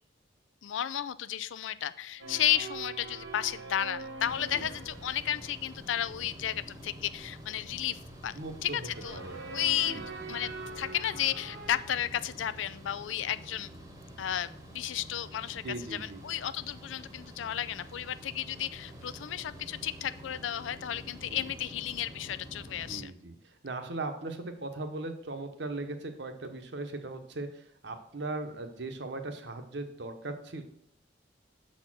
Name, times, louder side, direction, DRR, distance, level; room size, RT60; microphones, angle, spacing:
voice 1, 0.6-8.3 8.6-9.2 9.5-10.0 10.3-13.7 14.2-15.6 15.9-23.1, left 11 dB, 85° left, 15 dB, 0.4 m, -33 dB
sound 1, 2.2-11.8, right 3 dB, 85° right, 1.4 m, -44 dB
sound 2, 4.2-23.0, equal, 15° right, 1.0 m, -48 dB
voice 2, 8.3-9.4 9.8-10.0 15.6-16.2 21.3-21.5 22.7-30.6, right 2 dB, 65° right, 7 dB, 0.9 m, -39 dB
6.5 x 4.3 x 6.1 m, 0.68 s
head